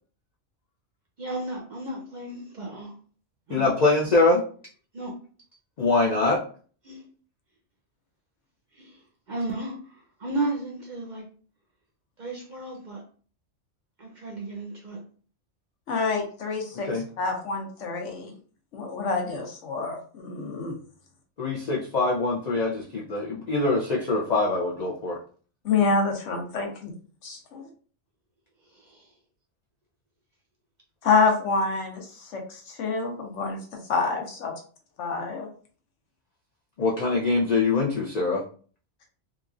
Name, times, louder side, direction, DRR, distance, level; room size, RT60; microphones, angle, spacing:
voice 1, 1.2-2.9 3.5-3.7 4.9-5.1 6.8-7.0 8.7-9.0 9.3-11.3 12.2-13.0 14.0-15.0 28.7-29.1, right 2 dB, 55° right, -1 dB, 0.5 m, -34 dB
voice 2, 3.5-4.4 5.8-6.4 16.8-17.0 21.4-25.2 36.8-38.4, left 3 dB, 60° left, -3 dB, 0.4 m, -23 dB
voice 3, 15.9-16.9 17.2-18.3 18.7-20.7 25.6-26.9 27.2-27.7 31.0-32.1 32.3-33.6 33.9-34.5 35.0-35.5, left 4 dB, 80° left, 2 dB, 1.1 m, -27 dB
2.9 x 2.4 x 2.4 m, 0.42 s
omnidirectional pair, 1.2 m